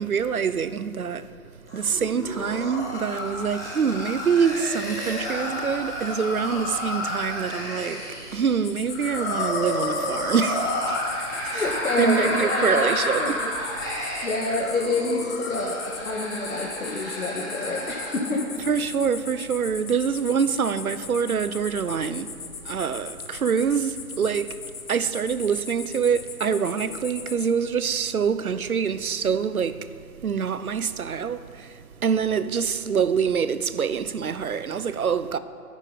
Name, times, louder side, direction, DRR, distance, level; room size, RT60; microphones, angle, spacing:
voice 1, 0.0-1.4 1.7-13.5 18.6-35.4, right 6 dB, 70° right, 0.9 m, -25 dB
sound 1, 1.7-18.3, left 1 dB, 5° right, 0.7 m, -31 dB
sound 2, 8.6-27.5, left 5 dB, 40° left, 1.2 m, -39 dB
voice 2, 11.5-13.5 14.2-18.4, left 2 dB, 65° left, 2.3 m, -28 dB
10.5 x 9.3 x 9.3 m
hypercardioid pair, 165°, 45 cm